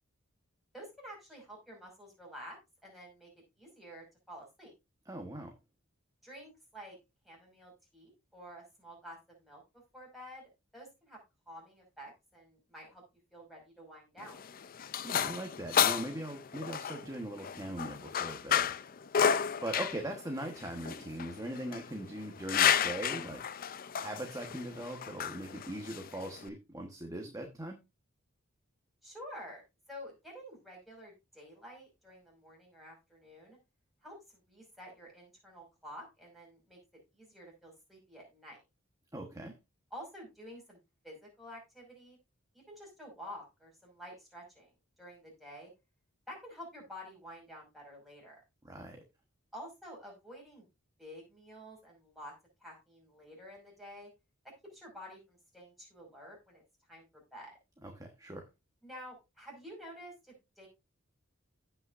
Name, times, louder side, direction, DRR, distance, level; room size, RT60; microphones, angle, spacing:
voice 1, 0.7-3.3 3.6-4.7 6.2-7.0 7.2-9.6 9.9-11.2 11.5-13.0 13.3-14.4 29.0-29.6 29.9-33.6 34.0-34.2 34.5-36.8 37.1-38.6 39.9-40.8 41.0-42.2 42.5-44.7 45.0-45.7 46.3-48.4 49.5-50.7 51.0-52.3 52.6-54.1 54.7-56.6 56.9-57.5 58.8-60.7, equal, ahead, -2 dB, 5.5 m, -50 dB
voice 2, 5.1-5.5 15.0-18.7 19.6-27.8 39.1-39.5 48.6-49.0 57.8-58.4, right 1 dB, 15° right, 3 dB, 1.2 m, -40 dB
sound 1, 14.2-26.5, left 8 dB, 45° left, 0.5 m, -32 dB
16.0 x 5.7 x 2.6 m, 0.25 s
head